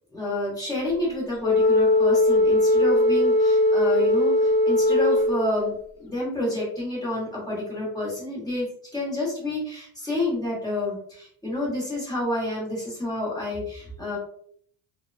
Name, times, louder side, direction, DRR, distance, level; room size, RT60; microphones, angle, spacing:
voice 1, 0.1-8.7 8.9-14.2, left 1 dB, 10° left, -6 dB, 1.0 m, -29 dB
Wind instrument woodwind instrument, 1.4-5.8, left 1 dB, 60° left, 0.9 m, -20 dB
2.9 x 2.1 x 2.4 m, 0.62 s
cardioid pair, 160°, 44 cm